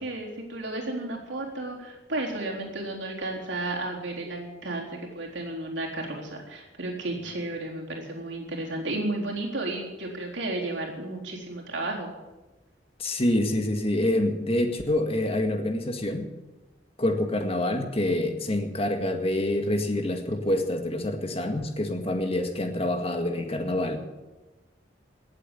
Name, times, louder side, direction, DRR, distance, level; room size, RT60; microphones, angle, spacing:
voice 1, 0.0-12.1, right 2 dB, 80° right, -1 dB, 3.9 m, -33 dB
voice 2, 13.0-16.3 17.0-24.0, left 1 dB, 35° left, 5 dB, 1.9 m, -26 dB
18.5 x 8.1 x 9.1 m, 1.1 s
head